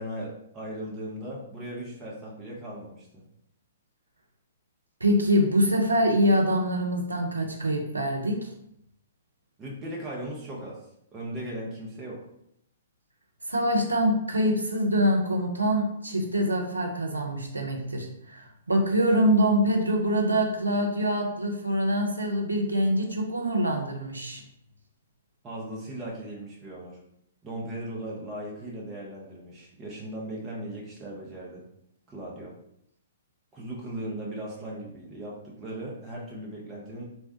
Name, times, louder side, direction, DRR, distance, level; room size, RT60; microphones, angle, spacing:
voice 1, 0.0-3.2 9.6-10.8 11.1-12.2 25.4-27.0 27.4-31.6 32.1-32.5 33.5-37.1, right 1 dB, 15° right, -4 dB, 0.7 m, -37 dB
voice 2, 5.0-8.5 13.5-24.4, equal, 80° right, 2 dB, 0.6 m, -25 dB
3.3 x 2.2 x 2.7 m, 0.75 s
figure-of-eight pair, 115°, 0 cm